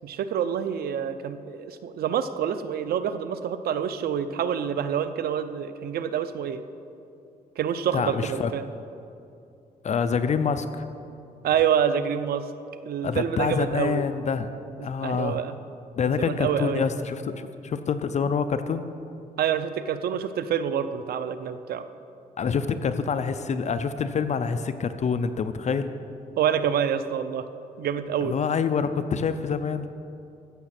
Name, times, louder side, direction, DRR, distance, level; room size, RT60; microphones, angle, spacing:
voice 1, 0.0-6.6 7.6-8.7 11.4-12.5 12.8-14.0 14.8-15.5 16.2-16.9 19.4-21.8 26.4-27.5 27.8-28.4, right 8 dB, 85° right, 11 dB, 0.6 m, -27 dB
voice 2, 7.9-8.5 9.8-10.8 13.0-14.5 14.8-15.4 16.0-18.9 22.4-25.9 28.2-29.9, left 6 dB, 50° left, 10 dB, 0.6 m, -26 dB
15.0 x 7.2 x 5.9 m, 2.6 s
cardioid pair, 115°, 15 cm